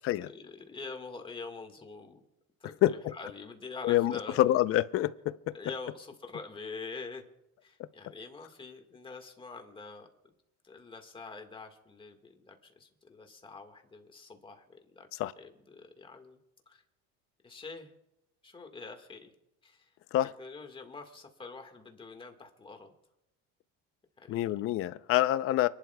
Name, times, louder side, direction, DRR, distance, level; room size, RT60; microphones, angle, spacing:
voice 1, 0.2-2.2 2.6-4.6 5.5-7.2 7.6-10.1 10.6-15.1 15.4-16.4 16.6-16.8 17.4-17.9 18.4-19.3 19.6-20.0 20.4-22.9 24.2-24.5, left 4 dB, 15° left, 1.6 m, -45 dB
voice 2, 2.8-3.1 3.8-5.5 15.2-15.3 20.1-20.3 24.3-25.7, left 14 dB, 45° left, 0.6 m, -27 dB
30.0 x 11.5 x 2.3 m
cardioid pair, 150°, 31 cm